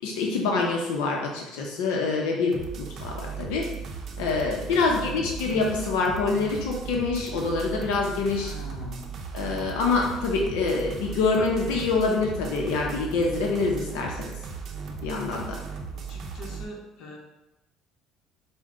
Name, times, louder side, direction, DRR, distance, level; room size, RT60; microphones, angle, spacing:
voice 1, 0.0-3.7 4.2-8.5 9.3-14.4 15.0-15.6, left 4 dB, 85° left, 0 dB, 0.7 m, -26 dB
sound 1, 2.5-16.6, right 6 dB, 45° right, 0.5 m, -37 dB
voice 2, 4.8-5.2 8.4-9.1 15.9-17.2, left 2 dB, 65° left, -1 dB, 1.0 m, -42 dB
5.1 x 2.1 x 3.7 m, 0.96 s
cardioid pair, 115°, 0 cm